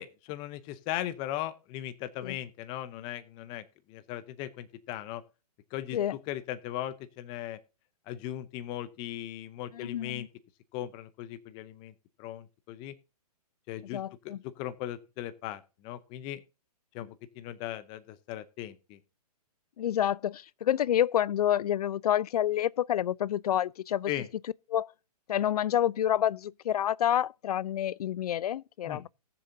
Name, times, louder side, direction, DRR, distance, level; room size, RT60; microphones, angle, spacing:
voice 1, 0.0-5.2 5.7-6.0 6.3-7.6 8.1-10.3 10.7-11.9 12.2-12.9 13.7-16.4 16.9-17.1 17.4-19.0 24.1-24.3 28.9-29.0, left 13 dB, 25° left, 0.6 m, -38 dB
voice 2, 9.7-10.3 13.9-14.4 19.8-24.1 24.7-24.9 25.3-29.1, left 11 dB, 70° left, 0.5 m, -28 dB
19.0 x 6.9 x 2.7 m
hypercardioid pair, 145°, 20 cm